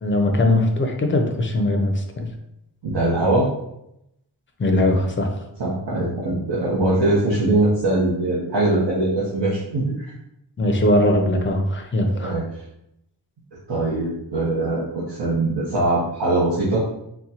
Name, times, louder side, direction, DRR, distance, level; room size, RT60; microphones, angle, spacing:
voice 1, 0.0-2.3 4.6-5.3 10.6-12.3, left 1 dB, 30° left, 4 dB, 0.5 m, -20 dB
voice 2, 2.8-3.5 5.6-10.1 12.2-12.5 13.7-16.8, right 2 dB, 65° right, -8 dB, 0.9 m, -21 dB
4.1 x 2.2 x 2.8 m, 0.82 s
wide cardioid pair, 105°, 45 cm